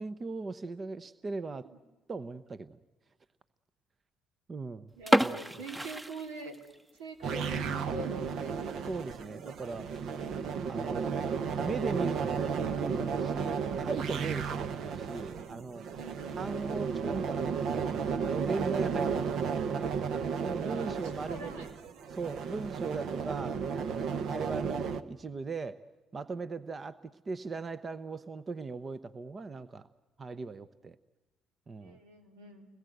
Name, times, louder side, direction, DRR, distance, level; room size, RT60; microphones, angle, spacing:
voice 1, 0.0-1.7 2.1-2.8 4.5-4.9 5.2-5.4 8.9-9.9 10.7-11.1 11.6-15.8 16.4-17.6 18.2-19.9 20.4-21.7 22.1-25.8 26.1-27.0 27.3-29.9 30.2-31.0 31.7-32.0, right 3 dB, 35° right, 14 dB, 0.9 m, -39 dB
sound 1, 5.0-6.9 7.2-7.3 7.9-8.0 8.5-8.6 8.8-8.9 9.7-10.0, right 1 dB, 15° right, 1.2 m, -29 dB
voice 2, 5.0-6.5 7.0-8.6 16.0-16.6 18.7-18.9 20.6-21.0 21.3-21.7 31.8-32.7, right 2 dB, 85° right, 5 dB, 3.2 m, -44 dB
sound 2, 7.2-25.0, right 6 dB, 65° right, 1.2 m, -33 dB
29.5 x 21.0 x 8.0 m, 1.1 s
hypercardioid pair, 60°, 0 cm